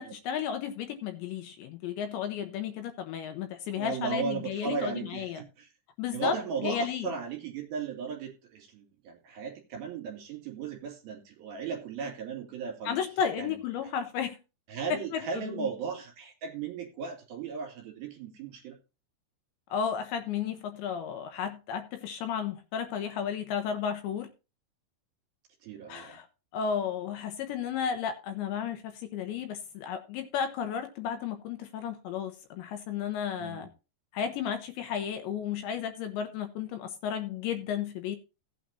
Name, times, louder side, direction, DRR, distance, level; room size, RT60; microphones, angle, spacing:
voice 1, 0.0-5.4 6.0-7.1 12.9-14.4 14.9-15.7 19.7-24.3 25.9-26.3 26.5-33.7 34.1-38.2, left 8 dB, 75° left, 3.0 m, -33 dB
voice 2, 3.8-5.7 6.1-13.0 13.4-13.5 13.8-13.9 14.7-18.8 25.6-26.2 33.4-33.7, right 5 dB, 55° right, 4.2 m, -36 dB
16.5 x 8.7 x 2.8 m
omnidirectional pair, 5.7 m